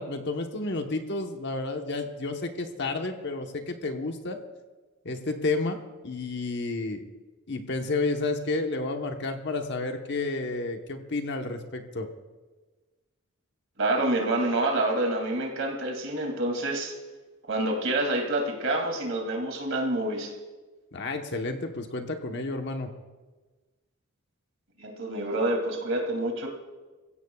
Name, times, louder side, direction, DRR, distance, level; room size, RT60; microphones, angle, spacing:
voice 1, 0.0-4.4 5.0-5.8 6.0-7.0 7.5-12.1 20.9-22.9, left 3 dB, 50° left, 4 dB, 1.1 m, -31 dB
voice 2, 13.8-17.0 17.5-20.3 24.8-26.5, right 1 dB, 60° right, 1 dB, 2.6 m, -27 dB
23.0 x 15.5 x 2.4 m, 1.3 s
head